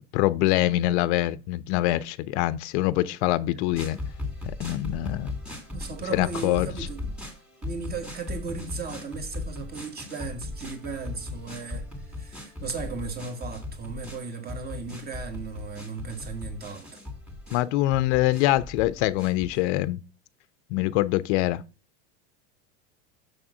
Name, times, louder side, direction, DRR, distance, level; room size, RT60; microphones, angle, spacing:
voice 1, 0.1-4.0 4.4-5.3 6.1-6.7 17.5-20.0 20.7-21.6, left 16 dB, 65° left, 0.5 m, -24 dB
sound 1, 3.7-19.9, left 2 dB, ahead, 2.4 m, -38 dB
voice 2, 5.7-7.1 7.6-17.0, right 4 dB, 25° right, 1.5 m, -36 dB
6.6 x 3.5 x 6.0 m
supercardioid pair, 110°, 37 cm